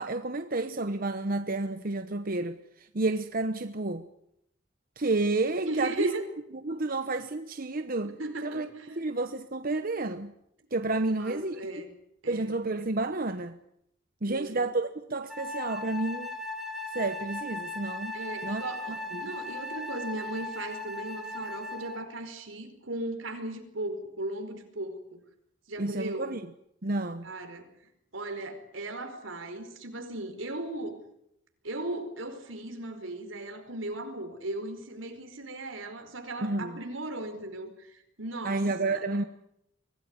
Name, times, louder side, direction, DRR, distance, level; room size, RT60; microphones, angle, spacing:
voice 1, 0.0-4.0 5.0-6.1 6.6-10.3 10.7-11.6 12.3-13.6 14.2-16.4 16.9-18.2 18.4-18.6 18.9-19.3 25.8-26.5 26.8-27.3 36.4-36.8 38.4-39.2, right 2 dB, 45° right, 1.0 m, -30 dB
voice 2, 5.7-6.2 8.2-9.0 11.2-11.9 12.2-12.5 14.3-14.7 18.1-25.2 25.7-26.3 27.2-27.7 28.1-31.0 31.6-39.3, right 2 dB, 80° right, 4.8 m, -37 dB
Wind instrument woodwind instrument, 15.3-22.1, left 2 dB, ahead, 2.7 m, -37 dB
24.0 x 18.0 x 9.7 m
head